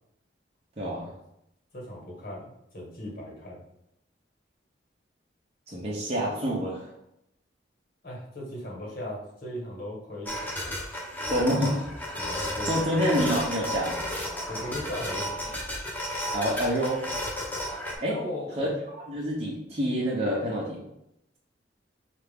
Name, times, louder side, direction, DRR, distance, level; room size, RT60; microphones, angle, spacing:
voice 1, 0.8-1.1 5.7-6.9 11.3-11.7 12.7-14.0 16.3-17.0 18.0-18.1 18.6-18.7 18.9-20.8, equal, 35° right, -5 dB, 0.7 m, -27 dB
voice 2, 1.7-3.6 8.0-10.6 12.2-12.7 14.5-15.5 18.1-18.6, left 1 dB, 55° left, -2 dB, 1.3 m, -38 dB
sound 1, 10.3-18.0, equal, 10° left, 0.8 m, -33 dB
4.5 x 2.4 x 3.4 m, 0.82 s
head